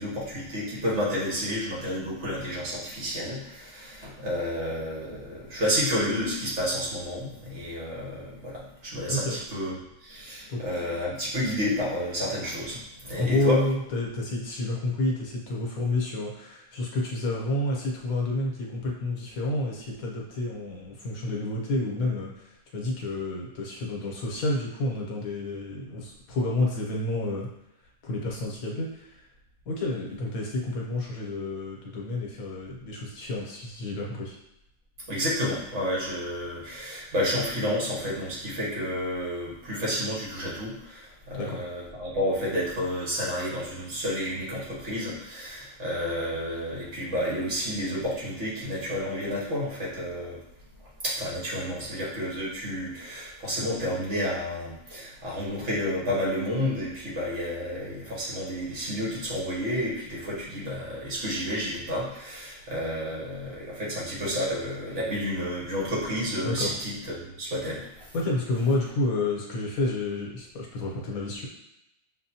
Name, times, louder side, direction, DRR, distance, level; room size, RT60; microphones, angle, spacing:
voice 1, 0.0-13.6 35.1-50.4 51.0-68.1, equal, 60° right, -6 dB, 1.6 m, -30 dB
voice 2, 13.2-27.5 28.0-29.2 29.7-34.4 41.4-41.6 66.4-66.7 68.1-71.5, left 2 dB, 90° left, -2 dB, 1.3 m, -29 dB
6.3 x 2.2 x 2.8 m, 0.86 s
omnidirectional pair, 1.4 m